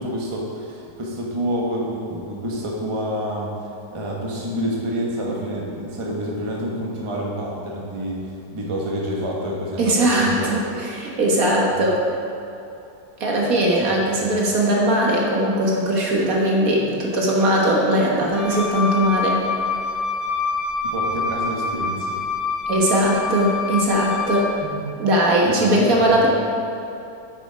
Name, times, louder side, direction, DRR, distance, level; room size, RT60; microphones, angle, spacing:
voice 1, 0.0-3.5 3.9-10.8 11.7-11.9 13.5-13.9 14.2-14.3 20.8-22.1 24.6-24.8 25.5-26.3, equal, 20° right, -3 dB, 1.0 m, -28 dB
voice 2, 9.8-12.0 13.2-19.4 22.7-24.5 25.0-26.3, right 1 dB, 55° right, -3 dB, 1.7 m, -19 dB
Wind instrument woodwind instrument, 18.3-24.6, left 4 dB, 30° left, 0.7 m, -26 dB
8.7 x 6.2 x 5.0 m, 2.7 s
omnidirectional pair, 1.8 m